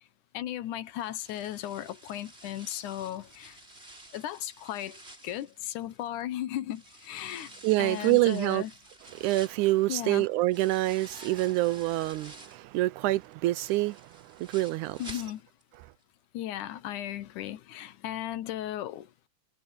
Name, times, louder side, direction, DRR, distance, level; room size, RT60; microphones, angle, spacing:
voice 1, 0.3-3.6 4.1-8.7 9.9-10.3 15.0-15.4 16.3-19.3, left 12 dB, 80° left, 2.5 m, -36 dB
sound 1, 0.9-6.2 6.7-12.7 13.1-15.7 16.0-16.1 16.6-16.7, right 1 dB, 20° right, 5.9 m, -51 dB
voice 2, 7.6-8.6 9.1-15.0, right 18 dB, 80° right, 2.0 m, -26 dB
omnidirectional pair, 3.6 m